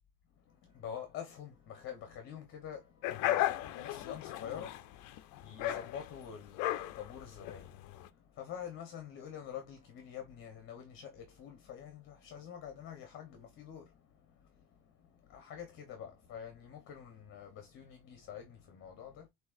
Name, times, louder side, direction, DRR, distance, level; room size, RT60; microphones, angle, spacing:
voice 1, 0.3-19.3, left 8 dB, 35° left, 1.0 m, -47 dB
sound 1, 3.0-8.1, left 14 dB, 55° left, 0.6 m, -35 dB
7.5 x 2.8 x 2.5 m
cardioid pair, 170°, 36 cm